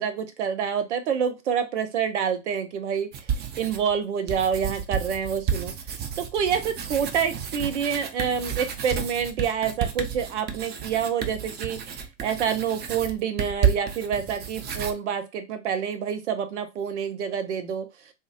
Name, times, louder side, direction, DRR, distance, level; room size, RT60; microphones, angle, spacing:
voice 1, 0.0-3.1 3.6-5.7 6.2-17.9, right 7 dB, 75° right, 8 dB, 0.7 m, -27 dB
sound 1, 3.1-3.9 4.3-14.9, right 7 dB, 30° right, 0.5 m, -31 dB
3.7 x 2.1 x 2.6 m, 0.24 s
hypercardioid pair, 95°, 35 cm